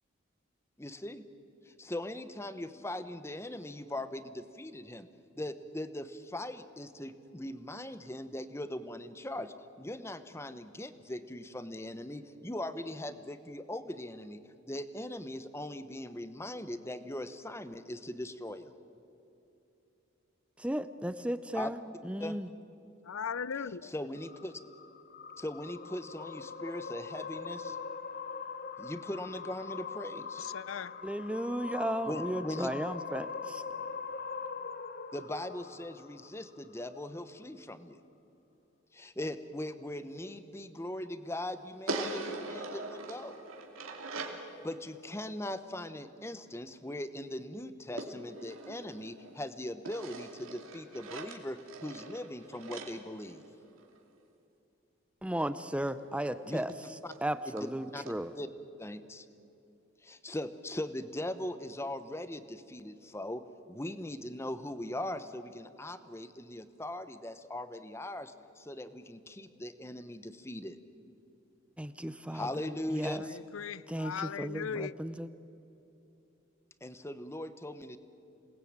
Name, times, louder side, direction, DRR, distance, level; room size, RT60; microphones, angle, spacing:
voice 1, 0.8-1.2 1.7-5.1 5.3-14.4 14.7-18.7 21.5-21.7 22.2-22.4 23.5-24.6 25.4-27.8 28.8-30.4 32.0-32.7 35.1-38.0 38.9-43.4 44.6-53.4 56.5-56.6 57.0-57.1 57.5-57.7 57.9-58.0 58.4-58.5 58.8-59.2 60.0-63.4 63.7-70.8 72.3-73.2 76.8-78.0, left 1 dB, 15° left, 0.9 m, -40 dB
voice 2, 20.6-22.5 31.0-33.6 55.2-56.7 57.2-58.3 71.8-73.2 73.9-75.3, right 1 dB, 5° right, 0.6 m, -35 dB
voice 3, 23.1-23.9 30.5-30.9 73.5-74.9, left 7 dB, 80° left, 0.5 m, -37 dB
sound 1, 24.2-36.7, left 5 dB, 45° left, 0.8 m, -42 dB
sound 2, 41.9-44.5 48.0-49.4 49.8-54.0 55.9-56.0 56.3-56.4 56.7-56.8 57.1-57.2 57.6-57.7 58.1-58.2, right 2 dB, 85° right, 2.9 m, -41 dB
27.5 x 19.5 x 8.8 m
head